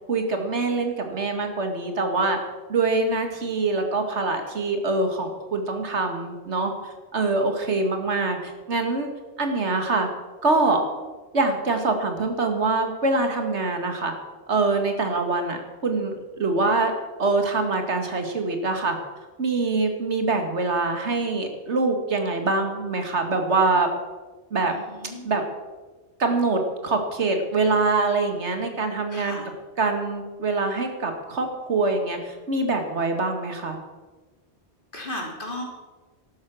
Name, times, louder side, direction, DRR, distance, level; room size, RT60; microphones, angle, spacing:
voice 1, 0.1-2.4 2.7-9.1 9.4-10.1 10.4-10.8 11.3-14.1 14.5-16.9 17.2-19.0 19.4-23.9 24.5-24.7 25.2-25.4 26.2-29.4 29.8-33.8, right 3 dB, 90° right, 5 dB, 2.2 m, -24 dB
voice 2, 24.7-25.2 29.1-29.5 34.9-35.6, left 1 dB, 50° left, 0 dB, 3.3 m, -35 dB
13.0 x 12.0 x 6.2 m, 1.3 s
omnidirectional pair, 1.1 m